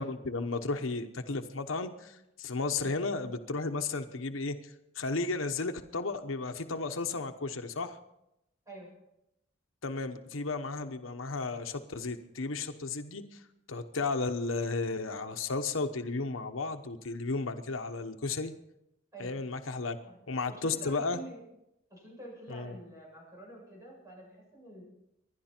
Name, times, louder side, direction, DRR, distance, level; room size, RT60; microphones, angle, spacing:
voice 1, 0.0-4.6 5.0-8.0 9.8-13.4 13.7-18.5 19.2-20.0 20.3-21.2 22.5-22.8, left 3 dB, 90° left, 7 dB, 1.0 m, -34 dB
voice 2, 20.4-21.4 21.9-24.8, right 1 dB, 15° right, -2 dB, 7.8 m, -47 dB
26.5 x 11.5 x 4.4 m, 0.85 s
head